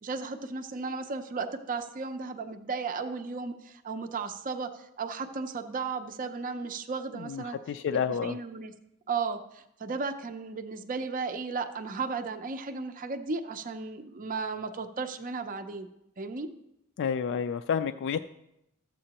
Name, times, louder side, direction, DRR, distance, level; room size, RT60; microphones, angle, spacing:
voice 1, 0.0-7.6 7.9-8.7 9.1-15.9 16.2-16.5, right 4 dB, 35° right, 7 dB, 0.5 m, -35 dB
voice 2, 7.3-8.4 17.0-18.2, left 7 dB, 55° left, 9 dB, 0.3 m, -29 dB
13.5 x 7.6 x 2.9 m, 0.83 s
head